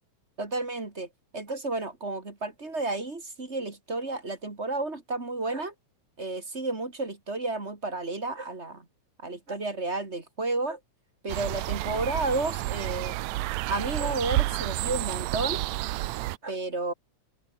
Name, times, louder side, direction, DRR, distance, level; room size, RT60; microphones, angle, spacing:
voice 1, 0.4-1.1 1.3-5.7 6.2-8.8 9.2-10.8 11.2-13.1 13.7-15.6 16.4-16.9, right 2 dB, 20° right, 3.0 m, -32 dB
sound 1, 11.3-16.4, right 18 dB, 80° right, 1.8 m, -30 dB
omnidirectional pair, 3.4 m